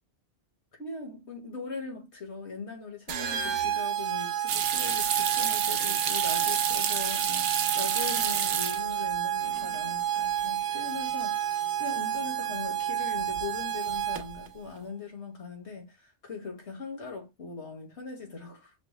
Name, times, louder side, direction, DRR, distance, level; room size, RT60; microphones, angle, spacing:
voice 1, 0.8-18.7, left 4 dB, 70° left, 1.7 m, -40 dB
sound 1, 3.1-14.5, right 10 dB, 90° right, 1.0 m, -30 dB
sound 2, 4.5-9.1 9.4-10.0 10.4-10.5 13.2-13.6 13.9-14.4, right 8 dB, 65° right, 0.7 m, -30 dB
6.0 x 2.0 x 3.1 m
omnidirectional pair, 1.2 m